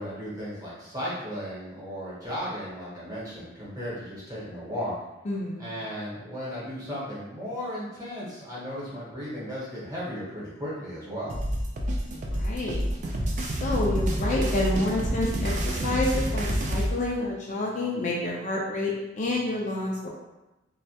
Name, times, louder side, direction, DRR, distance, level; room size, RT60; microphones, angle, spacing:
voice 1, 0.0-4.9 5.6-11.4, equal, 20° right, -8 dB, 0.9 m, -35 dB
voice 2, 5.3-5.7 12.1-12.8 13.4-20.1, left 2 dB, 40° left, -3 dB, 0.3 m, -29 dB
sound 1, 11.3-16.9, equal, 40° right, 0.3 m, -28 dB
2.2 x 2.1 x 2.7 m, 0.98 s
head